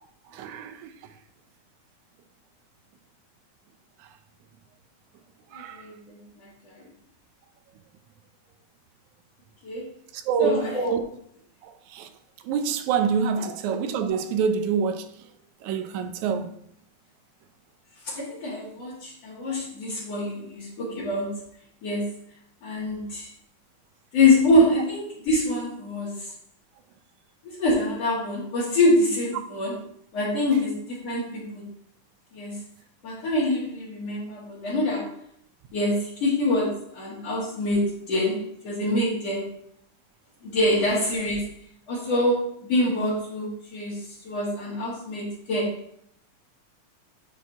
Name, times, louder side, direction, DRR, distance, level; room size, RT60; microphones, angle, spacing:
voice 1, 0.3-0.9 5.5-5.8 10.1-11.0 11.6-12.1 12.4-15.1 15.6-16.5, right 6 dB, 75° right, 2.0 m, -26 dB
voice 2, 5.5-6.8 9.6-9.9 10.4-10.9 18.0-21.4 21.8-22.1 22.6-23.3 24.1-26.3 27.4-29.8 30.1-31.7 32.3-32.6 33.0-35.2 35.7-39.5 40.4-41.5 41.9-45.8, left 1 dB, 55° left, 3.1 m, -25 dB
10.0 x 4.6 x 3.5 m
omnidirectional pair, 3.6 m